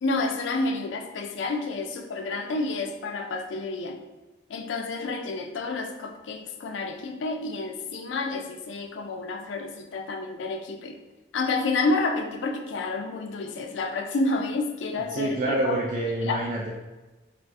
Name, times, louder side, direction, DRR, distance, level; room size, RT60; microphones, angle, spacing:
voice 1, 0.0-4.0 4.5-11.0 11.3-15.8 16.2-16.5, left 3 dB, 80° left, 4 dB, 0.4 m, -29 dB
voice 2, 15.1-16.7, right 1 dB, 45° right, -3 dB, 0.3 m, -27 dB
2.8 x 2.4 x 3.3 m, 1.1 s
head